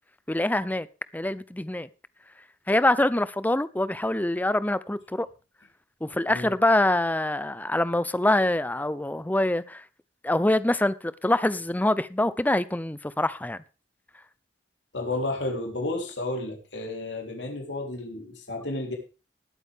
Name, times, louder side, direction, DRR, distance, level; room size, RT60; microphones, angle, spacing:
voice 1, 0.3-0.9 1.1-1.9 2.7-5.3 6.0-9.8 10.2-13.6, left 1 dB, 10° left, 0.6 m, -25 dB
voice 2, 14.9-19.0, left 2 dB, 80° left, 3.6 m, -32 dB
19.5 x 8.5 x 3.5 m
head